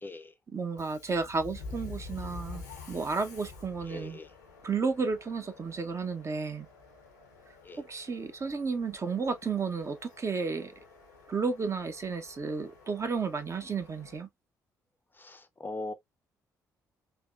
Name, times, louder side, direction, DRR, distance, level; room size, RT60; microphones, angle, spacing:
voice 1, 0.0-0.3 3.9-4.3 7.6-7.8 15.1-15.9, left 2 dB, 25° left, 0.4 m, -40 dB
voice 2, 0.5-4.2 4.6-6.7 7.8-10.7 11.3-14.3, right 4 dB, 35° right, 0.7 m, -32 dB
Subway metro underground, 0.7-14.2, left 4 dB, 85° left, 0.6 m, -48 dB
3.4 x 2.1 x 2.3 m
figure-of-eight pair, 40°, 9 cm